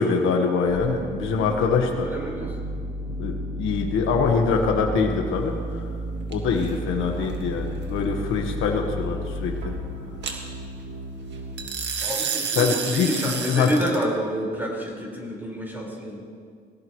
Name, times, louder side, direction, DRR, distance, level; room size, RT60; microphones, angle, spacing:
voice 1, 0.0-2.1 3.2-5.6 6.3-9.7 12.6-13.7, left 5 dB, 85° left, 2 dB, 1.5 m, -24 dB
sound 1, 0.7-11.7, equal, 80° right, 1.7 m, -33 dB
voice 2, 2.0-2.6 6.7-7.0 12.0-16.2, equal, 10° right, -4 dB, 5.0 m, -29 dB
sound 2, 6.3-6.7 10.2-10.4 11.6-14.0, right 6 dB, 60° right, 1.9 m, -29 dB
20.0 x 16.5 x 3.2 m, 2.1 s
cardioid pair, 90°, 20 cm